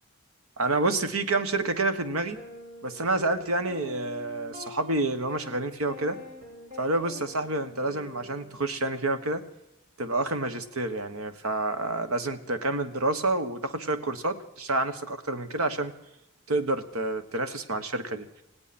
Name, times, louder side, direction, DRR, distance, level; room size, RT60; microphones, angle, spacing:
voice 1, 0.6-2.4 2.8-6.2 6.8-9.4 10.0-15.9 16.5-18.3, right 2 dB, 85° right, 9 dB, 1.4 m, -28 dB
sound 1, 1.5-1.7 2.4-8.7, left 2 dB, 35° right, 5.6 m, -45 dB
18.5 x 17.5 x 4.3 m, 0.89 s
head